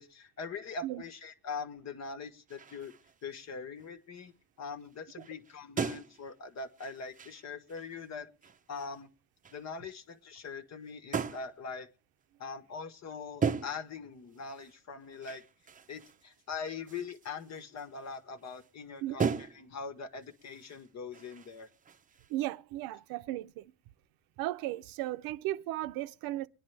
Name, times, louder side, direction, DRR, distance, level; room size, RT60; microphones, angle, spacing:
voice 1, 0.0-2.9 3.2-4.3 4.6-8.3 8.7-9.1 9.5-11.9 12.4-15.4 15.9-21.7, left 5 dB, 50° left, 1.6 m, -42 dB
sound 1, 2.5-3.5 3.8-4.3 4.9-5.0 5.2-8.1 8.4-9.0 9.4-9.6 11.1-11.6 13.4-14.0 14.3-18.7 19.2-19.8 20.2-22.3, right 6 dB, 20° right, 0.7 m, -39 dB
voice 2, 22.3-23.7 24.4-26.5, right 15 dB, 80° right, 0.7 m, -36 dB
23.0 x 10.0 x 3.4 m
cardioid pair, 115°, 35 cm